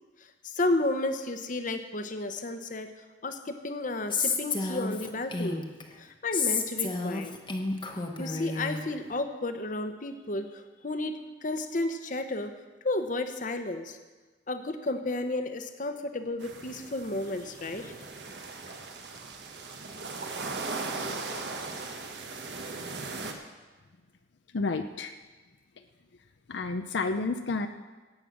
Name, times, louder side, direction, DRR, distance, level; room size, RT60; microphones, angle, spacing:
voice 1, 0.4-2.9 3.2-5.6 6.0-7.3 8.2-12.5 12.8-14.0 14.5-17.9, left 2 dB, 50° left, 8 dB, 1.0 m, -32 dB
Female speech woman speaking, 4.1-5.8 6.3-8.8, left 4 dB, 30° left, 1.1 m, -30 dB
sound 1, 16.4-23.3, right 3 dB, 75° right, 1.5 m, -38 dB
voice 2, 24.5-25.1 26.5-27.7, left 3 dB, 80° left, 7 dB, 0.6 m, -30 dB
17.0 x 7.9 x 6.1 m, 1.3 s
head